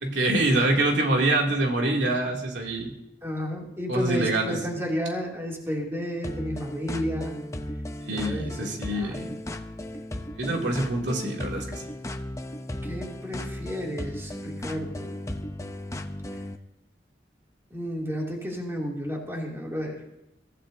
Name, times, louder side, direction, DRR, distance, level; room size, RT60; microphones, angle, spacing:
voice 1, 0.0-2.9 3.9-4.6 8.0-9.3 10.4-11.8, right 2 dB, 90° right, 0 dB, 2.8 m, -25 dB
voice 2, 3.2-7.3 8.1-9.2 10.7-10.9 12.8-15.1 17.7-20.0, equal, 15° right, -2 dB, 2.8 m, -32 dB
sound 1, 6.2-16.6, left 1 dB, 20° left, 0.8 m, -36 dB
23.0 x 14.5 x 2.8 m, 0.84 s
head